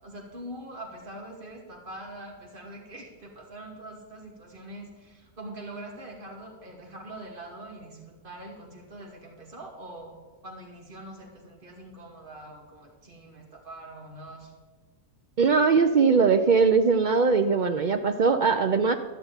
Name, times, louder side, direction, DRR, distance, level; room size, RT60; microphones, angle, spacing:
voice 1, 0.0-10.1 10.4-14.5, right 1 dB, 35° right, 0 dB, 2.5 m, -43 dB
voice 2, 15.4-18.9, right 5 dB, 85° right, 8 dB, 0.4 m, -21 dB
13.5 x 6.8 x 8.8 m, 1.4 s
omnidirectional pair, 1.6 m